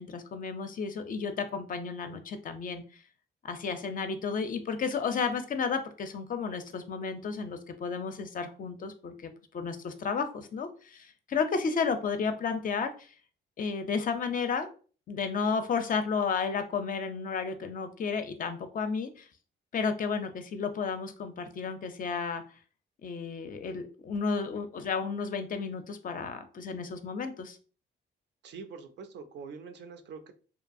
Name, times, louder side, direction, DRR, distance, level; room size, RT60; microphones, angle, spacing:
voice 1, 0.0-2.8 3.4-13.1 13.6-14.7 15.1-19.3 19.7-22.4 23.0-27.6, left 5 dB, 45° left, 8 dB, 0.4 m, -32 dB
voice 2, 28.4-30.3, right 5 dB, 65° right, 8 dB, 0.5 m, -44 dB
2.7 x 2.3 x 2.5 m, 0.38 s
cardioid pair, 90°, 20 cm